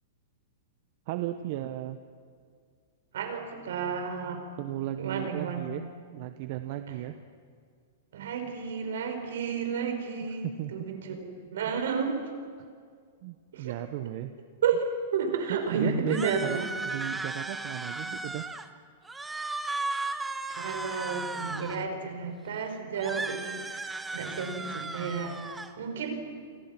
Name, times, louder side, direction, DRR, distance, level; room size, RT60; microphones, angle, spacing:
voice 1, 1.1-2.0 4.6-5.8 6.1-7.2 10.4-10.9 13.2-14.3 15.5-18.4, right 13 dB, 50° right, 9 dB, 1.2 m, -35 dB
voice 2, 3.1-4.4 5.0-5.6 6.9-7.0 8.1-12.2 13.5-13.7 14.6-14.9 15.1-16.6 18.0-18.1 20.5-25.4 25.8-26.2, right 6 dB, 75° right, 5 dB, 5.5 m, -32 dB
sound 1, 16.1-18.7 19.0-21.8 23.0-25.7, right 3 dB, 5° right, 1.4 m, -35 dB
30.0 x 24.5 x 6.1 m, 2.1 s
hypercardioid pair, 140°, 0 cm